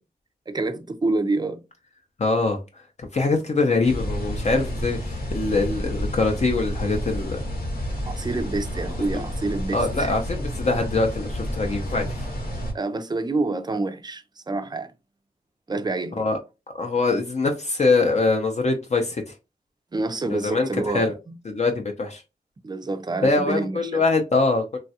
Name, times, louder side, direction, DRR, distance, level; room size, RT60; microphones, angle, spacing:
voice 1, 0.5-1.6 8.1-10.1 12.7-14.9 15.7-16.3 19.9-21.4 22.6-24.0, right 2 dB, 25° right, 0.4 m, -27 dB
voice 2, 2.2-2.6 3.1-7.4 9.7-12.3 16.2-16.4 16.7-19.2 20.2-20.7 20.9-21.1 21.5-22.2 23.2-24.8, left 3 dB, 45° left, 0.5 m, -23 dB
sound 1, 3.8-12.7, equal, 85° left, 1.0 m, -30 dB
3.1 x 2.3 x 2.7 m
wide cardioid pair, 105°, 16 cm